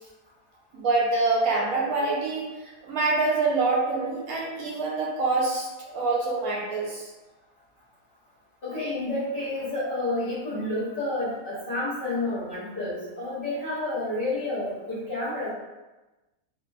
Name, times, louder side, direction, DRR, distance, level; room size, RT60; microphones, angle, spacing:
voice 1, 0.7-2.5 2.8-7.1, right 3 dB, 70° right, -3 dB, 1.0 m, -25 dB
voice 2, 8.6-15.5, left 2 dB, 50° left, -10 dB, 0.7 m, -30 dB
2.6 x 2.4 x 2.4 m, 1.1 s
omnidirectional pair, 1.7 m